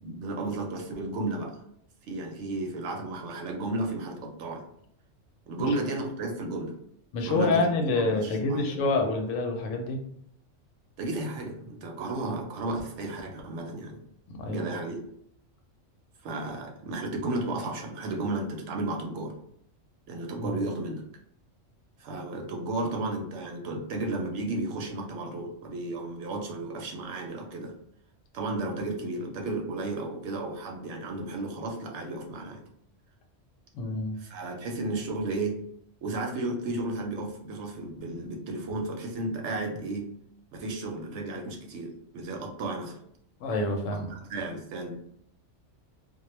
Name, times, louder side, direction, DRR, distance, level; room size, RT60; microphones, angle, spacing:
voice 1, 0.0-1.6 2.0-4.6 5.5-6.7 7.2-7.7 8.0-8.8 11.0-14.0 14.5-15.0 16.2-19.3 20.1-21.0 22.0-27.7 28.3-32.6 34.2-35.6 36.0-40.1 40.5-43.0 44.1-44.9, right 2 dB, 70° right, 2 dB, 0.8 m, -33 dB
voice 2, 7.1-10.0 14.3-14.7 20.4-20.6 33.7-34.2 43.4-44.1, left 2 dB, 80° left, 3 dB, 0.9 m, -27 dB
2.2 x 2.1 x 3.0 m, 0.70 s
omnidirectional pair, 1.3 m